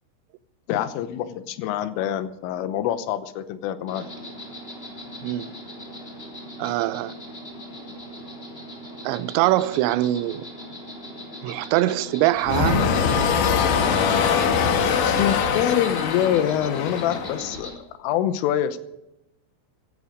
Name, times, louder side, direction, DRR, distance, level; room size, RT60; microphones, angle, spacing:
voice 1, 0.7-4.1 15.0-17.7 18.0-18.8, left 10 dB, 85° left, 3.5 m, -25 dB
Insect, 3.9-17.7, equal, 15° left, 2.6 m, -40 dB
voice 2, 5.2-5.5 6.6-7.1 9.0-10.5 11.4-12.9, right 15 dB, 85° right, 2.6 m, -23 dB
sound 1, 12.4-17.6, left 6 dB, 65° left, 2.2 m, -22 dB
17.0 x 14.0 x 5.1 m
omnidirectional pair, 5.7 m